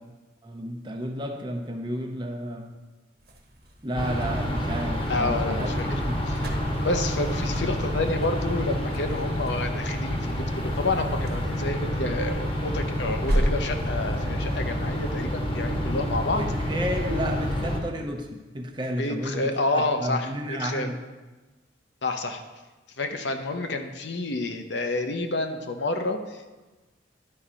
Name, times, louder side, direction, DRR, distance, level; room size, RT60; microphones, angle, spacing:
voice 1, 0.4-2.7 3.8-6.2 16.3-21.0, equal, 25° right, 2 dB, 0.8 m, -32 dB
sound 1, 3.2-14.3, equal, 55° right, 1.2 m, -35 dB
sound 2, 4.0-17.8, equal, 30° left, 1.1 m, -28 dB
voice 2, 5.1-5.9 6.3-6.4 6.8-16.4 19.0-20.9 22.0-22.4 23.0-26.5, left 2 dB, 65° left, 6 dB, 0.7 m, -29 dB
11.5 x 4.3 x 5.0 m, 1.2 s
head